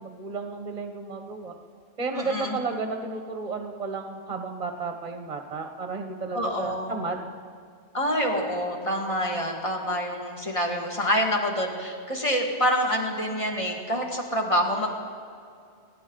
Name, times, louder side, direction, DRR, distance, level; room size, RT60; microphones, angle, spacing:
voice 1, 0.0-1.5 2.0-7.3, right 4 dB, 35° right, 4 dB, 1.1 m, -33 dB
voice 2, 2.1-2.6 6.3-7.0 7.9-14.9, equal, 30° left, 0 dB, 1.9 m, -27 dB
24.0 x 11.0 x 3.9 m, 2.3 s
omnidirectional pair, 1.2 m